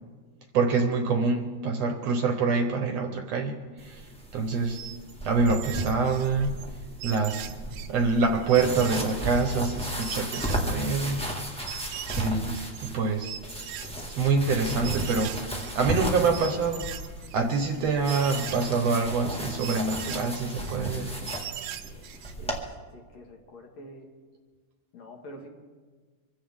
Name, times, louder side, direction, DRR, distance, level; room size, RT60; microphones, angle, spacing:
voice 1, 0.5-4.0 4.3-4.8 5.2-6.5 7.0-7.5 7.9-11.2 12.2-13.3 14.2-15.4 15.8-16.9 17.3-21.1, right 4 dB, 65° right, 5 dB, 2.0 m, -26 dB
sound 1, 3.8-22.6, right 1 dB, 5° left, 0.7 m, -35 dB
sound 2, 4.7-5.1 5.5-6.7 7.0-9.7 10.0-11.1 11.7-12.9 13.2-16.1 16.3-19.2 19.6-21.0 21.3-22.3, right 10 dB, 85° right, 2.3 m, -40 dB
voice 2, 22.4-24.1 24.9-25.5, equal, 60° left, 1 dB, 2.9 m, -46 dB
25.5 x 15.0 x 3.7 m, 1.4 s
omnidirectional pair, 3.6 m